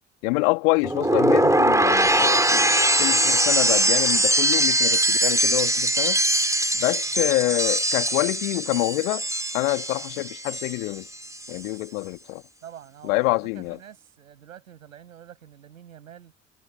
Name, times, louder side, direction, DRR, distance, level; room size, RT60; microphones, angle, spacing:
voice 1, 0.2-6.2 6.7-9.3 9.5-11.1 11.5-12.4 13.0-13.8, left 27 dB, 75° left, 2.6 m, -26 dB
sound 1, 0.8-10.9 11.2-11.7, right 1 dB, 10° right, 4.1 m, -22 dB
voice 2, 12.6-16.3, right 10 dB, 85° right, 7.3 m, -46 dB
figure-of-eight pair, 50°, 40 cm